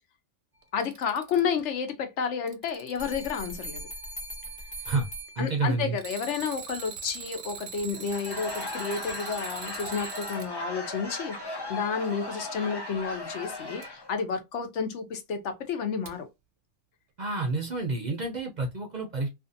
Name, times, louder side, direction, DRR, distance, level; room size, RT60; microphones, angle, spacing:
Alarm, 0.6-1.6 2.2-3.6 6.0-10.5 13.8-13.9 16.1-16.2, right 7 dB, 90° right, 1.0 m, -42 dB
voice 1, 0.7-3.8 5.4-16.3, left 6 dB, 75° left, 1.0 m, -31 dB
sound 1, 3.0-6.1, right 1 dB, 5° left, 0.8 m, -40 dB
voice 2, 5.4-6.0 17.2-19.3, right 3 dB, 50° right, 0.5 m, -29 dB
Laughter / Crowd, 7.9-14.2, left 2 dB, 30° left, 0.5 m, -37 dB
2.5 x 2.5 x 2.5 m
omnidirectional pair, 1.2 m